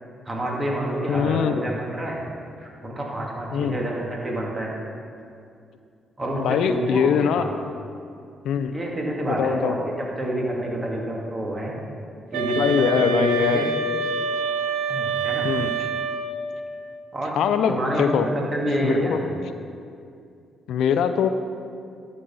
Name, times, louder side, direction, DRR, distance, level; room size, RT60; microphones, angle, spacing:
voice 1, 0.3-2.2 2.6-4.8 6.2-7.5 8.7-11.7 12.3-13.7 14.9-15.5 17.1-17.3 17.7-19.2, right 1 dB, 30° right, -2 dB, 2.5 m, -28 dB
voice 2, 1.1-1.7 3.5-3.8 6.4-7.5 8.4-8.7 9.3-9.7 12.6-13.7 15.4-15.7 17.4-18.3 18.8-19.2 20.7-21.3, left 7 dB, 75° left, 9 dB, 0.4 m, -22 dB
sound 1, 12.3-16.5, right 4 dB, 90° right, 0.7 m, -26 dB
11.5 x 5.3 x 5.5 m, 2.4 s
supercardioid pair, 55°, 0 cm